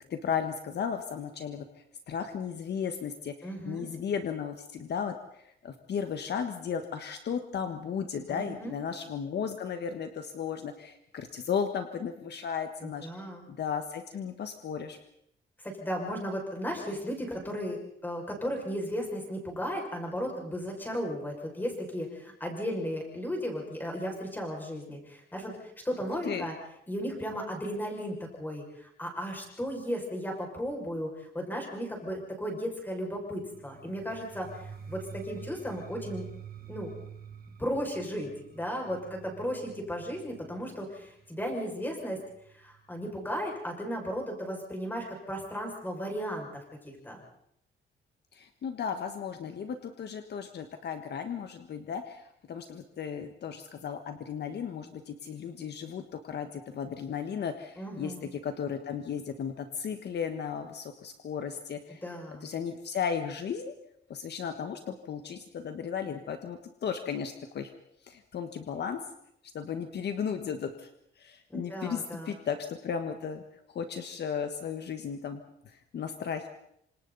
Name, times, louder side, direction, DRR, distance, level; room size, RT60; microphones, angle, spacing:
voice 1, 0.1-1.6 2.1-13.1 13.5-15.0 26.2-26.4 48.3-62.0 62.4-63.7 64.1-67.7 68.0-69.0 69.5-70.9 71.2-73.4 73.7-75.4 75.6-76.5, left 7 dB, 55° left, 6 dB, 1.5 m, -35 dB
voice 2, 3.4-3.9 8.3-8.7 12.8-13.4 15.6-17.8 18.0-25.5 25.8-26.5 26.9-36.3 36.7-36.9 37.6-42.2 42.6-46.5 46.8-47.2 57.8-58.2 62.0-62.5 71.5-72.3, equal, 10° left, 1 dB, 6.1 m, -35 dB
sound 1, 33.5-43.3, right 7 dB, 45° right, 2.3 m, -48 dB
27.5 x 26.5 x 4.1 m, 0.74 s
wide cardioid pair, 160°, 20 cm